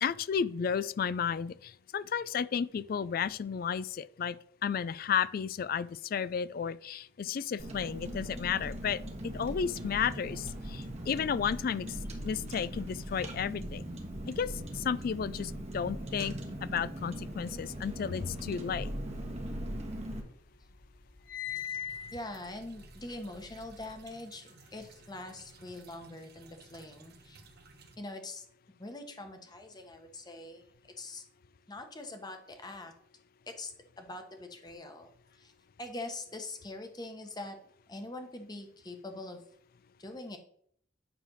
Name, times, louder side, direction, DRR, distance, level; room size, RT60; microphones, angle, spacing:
voice 1, 0.0-4.4 4.6-9.0 9.3-12.0 12.2-13.8 14.3-16.3 16.6-18.9, left 7 dB, 50° left, 0.3 m, -33 dB
Car, 7.6-20.2, right 1 dB, 35° right, 1.3 m, -40 dB
sound 1, 19.3-20.3 20.6-24.0, left 9 dB, 65° left, 1.3 m, -42 dB
sound 2, 21.5-27.9, right 3 dB, 55° right, 1.0 m, -57 dB
voice 2, 22.1-27.4 28.0-28.4 28.8-30.6 31.0-31.2 31.7-32.9 33.5-33.7 34.0-35.5 35.8-37.6 37.9-39.4 40.0-40.4, left 2 dB, 20° left, 1.1 m, -43 dB
9.0 x 3.4 x 6.2 m
head